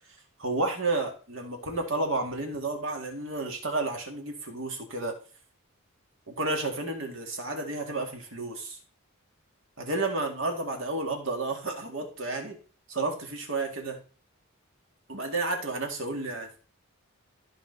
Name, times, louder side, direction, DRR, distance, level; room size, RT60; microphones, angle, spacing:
voice 1, 0.4-5.2 6.3-8.8 9.8-12.6 12.9-14.0 15.1-16.5, right 2 dB, 60° right, 3 dB, 2.3 m, -31 dB
14.0 x 5.2 x 4.1 m, 0.38 s
head